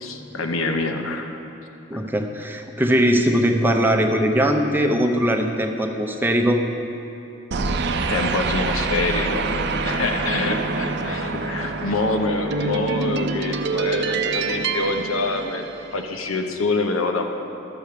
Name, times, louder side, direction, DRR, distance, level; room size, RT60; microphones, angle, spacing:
voice 1, 0.0-1.3 1.9-2.0 8.1-15.7 15.9-17.3, left 3 dB, 80° left, 4 dB, 1.0 m, -26 dB
voice 2, 1.9-6.6, equal, 10° right, 3 dB, 0.7 m, -20 dB
sound 1, 7.5-16.1, right 4 dB, 55° right, 0.6 m, -26 dB
12.0 x 7.1 x 6.7 m, 2.9 s
head